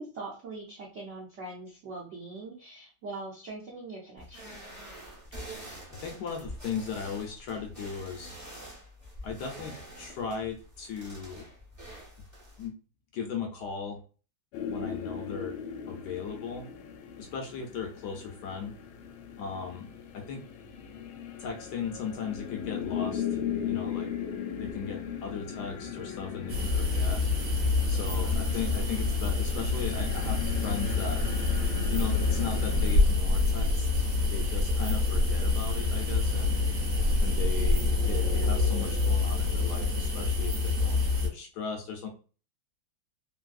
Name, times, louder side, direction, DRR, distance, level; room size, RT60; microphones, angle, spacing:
voice 1, 0.0-4.6, right 3 dB, 80° right, -3 dB, 0.6 m, -42 dB
sound 1, 4.2-12.7, equal, 15° right, 0.5 m, -46 dB
voice 2, 5.9-8.4 9.2-11.5 12.6-12.7 13.1-14.0 14.7-15.6 15.9-16.7 17.2-18.7 19.4-20.4 21.4-23.4 23.6-24.1 24.6-27.2 27.9-30.4 30.6-31.2 31.9-34.0 34.3-36.6 37.2-42.1, left 6 dB, 70° left, 4 dB, 1.0 m, -37 dB
Slow Doom Vortex, 14.5-32.9, left 8 dB, 90° left, 1.4 m, -38 dB
sound 2, 26.5-41.3, left 3 dB, 45° right, 1.0 m, -26 dB
3.2 x 2.6 x 2.3 m, 0.38 s
omnidirectional pair, 2.2 m